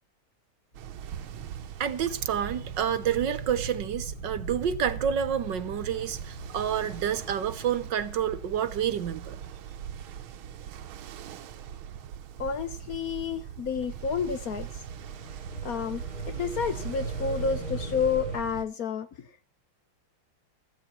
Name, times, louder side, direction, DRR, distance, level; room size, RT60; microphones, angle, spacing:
sound 1, 0.7-9.5 13.9-18.4, right 2 dB, 20° left, 2.3 m, -42 dB
Ocean, 0.7-18.7, right 9 dB, 75° right, 1.7 m, -40 dB
voice 1, 1.8-9.4, right 8 dB, 60° right, 1.6 m, -29 dB
voice 2, 12.4-14.7 15.6-19.5, left 6 dB, 60° left, 1.0 m, -30 dB
15.0 x 14.0 x 4.4 m
omnidirectional pair, 2.4 m